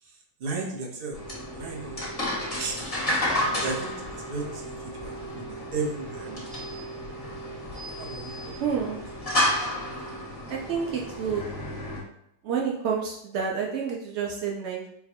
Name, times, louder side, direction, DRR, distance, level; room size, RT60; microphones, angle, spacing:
voice 1, 0.0-2.1 2.6-2.8 3.6-6.8 8.0-8.5, right 3 dB, 45° right, -1 dB, 0.8 m, -35 dB
sound 1, 1.1-12.0, left 1 dB, 20° left, 1.3 m, -31 dB
voice 2, 8.6-9.0 10.5-11.4 12.4-14.9, right 6 dB, 80° right, -1 dB, 0.6 m, -29 dB
4.4 x 2.3 x 4.3 m, 0.76 s
omnidirectional pair, 1.8 m